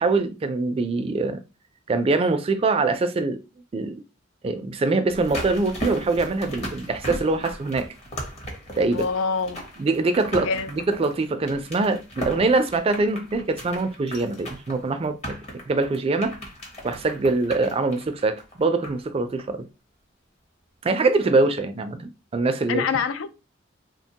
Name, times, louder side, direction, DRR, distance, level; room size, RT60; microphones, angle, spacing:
voice 1, 0.0-1.4 1.9-3.4 3.7-4.0 4.4-7.9 8.8-9.1 9.8-15.4 15.7-16.4 16.8-19.7 20.8-22.9, right 3 dB, 30° right, 0.3 m, -23 dB
sound 1, 5.1-19.1 19.4-19.5, equal, 35° left, 0.9 m, -37 dB
voice 2, 8.9-9.6 10.4-10.7 22.7-23.3, left 5 dB, 85° left, 0.4 m, -25 dB
2.9 x 2.1 x 2.8 m
head